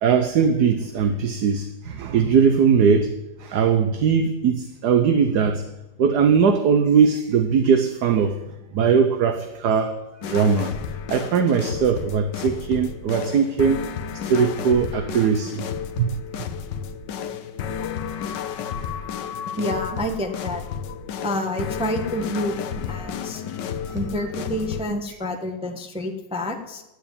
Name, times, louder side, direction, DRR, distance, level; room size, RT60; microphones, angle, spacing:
voice 1, 0.0-3.1 3.4-5.6 6.0-8.4 8.7-10.8 11.1-13.8 14.1-15.6 16.0-16.1, right 6 dB, 60° right, 7 dB, 1.3 m, -20 dB
sound 1, 10.2-24.8, left 7 dB, 65° left, 1.4 m, -32 dB
voice 2, 19.6-20.6 21.2-23.4 23.9-26.8, left 1 dB, 5° right, 3 dB, 0.8 m, -28 dB
11.0 x 9.1 x 8.6 m, 0.98 s
omnidirectional pair, 2.2 m